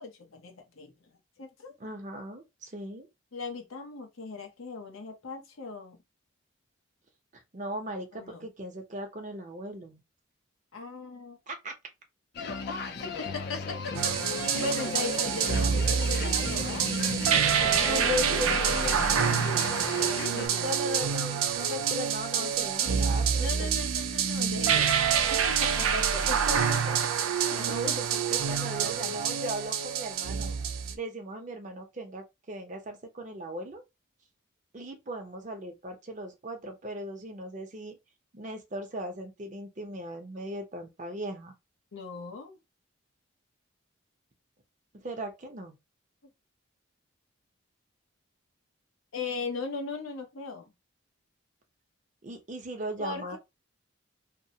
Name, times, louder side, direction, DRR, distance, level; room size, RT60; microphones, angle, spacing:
voice 1, 0.0-1.8 3.3-6.0 8.1-8.5 10.7-11.4 13.2-16.9 17.3-18.1 18.5-19.9 20.3-20.9 22.4-23.1 23.4-26.3 27.9-28.0 41.9-42.6 49.1-50.7 53.0-53.4, left 4 dB, 80° left, 0.8 m, -39 dB
voice 2, 1.8-3.1 7.3-10.0 11.5-11.7 17.9-18.7 20.6-23.7 24.4-24.6 26.2-27.0 27.5-30.5 30.9-33.8 34.7-38.0 38.3-41.5 44.9-45.8 52.2-53.4, equal, 35° right, 0.6 m, -37 dB
sound 1, 12.4-20.5, left 4 dB, 50° left, 0.4 m, -36 dB
sound 2, 13.9-30.9, right 7 dB, 85° right, 0.4 m, -27 dB
2.9 x 2.0 x 2.7 m
head